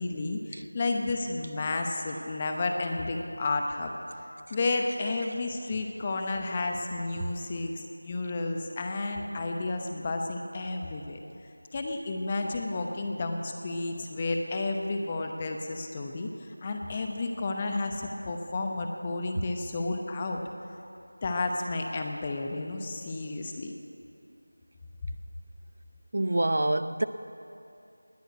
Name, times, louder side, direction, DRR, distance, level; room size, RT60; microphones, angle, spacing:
voice 1, 0.0-3.9 4.5-11.2 11.7-20.4 21.2-23.7, left 2 dB, 20° left, 3 dB, 0.8 m, -31 dB
voice 2, 26.1-27.0, right 1 dB, 55° right, 12 dB, 0.6 m, -26 dB
20.0 x 7.0 x 9.1 m, 2.7 s
figure-of-eight pair, 175°, 0 cm